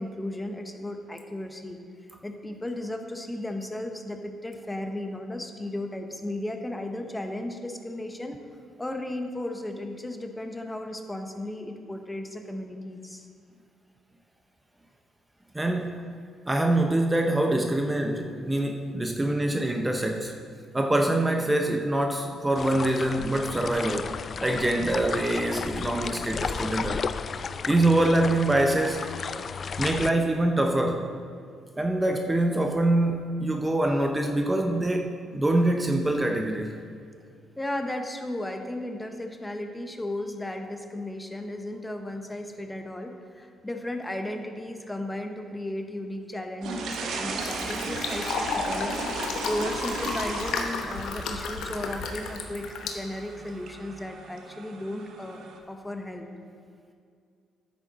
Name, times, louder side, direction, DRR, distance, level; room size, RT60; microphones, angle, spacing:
voice 1, 0.0-1.8 2.2-8.4 8.8-13.3 37.6-49.0 49.4-56.3, left 1 dB, 15° left, 5 dB, 1.0 m, -35 dB
voice 2, 15.5-16.2 16.5-20.3 20.7-27.1 27.7-29.1 29.8-31.1 31.8-36.8, right 1 dB, 15° right, 3 dB, 0.7 m, -25 dB
sound 1, 22.6-30.1, left 6 dB, 50° left, 0.3 m, -33 dB
Fill (with liquid), 46.6-53.7, left 4 dB, 75° left, 1.0 m, -33 dB
sound 2, 46.6-55.6, right 4 dB, 70° right, 1.0 m, -36 dB
10.0 x 7.4 x 4.1 m, 2.3 s
supercardioid pair, 65°, 0 cm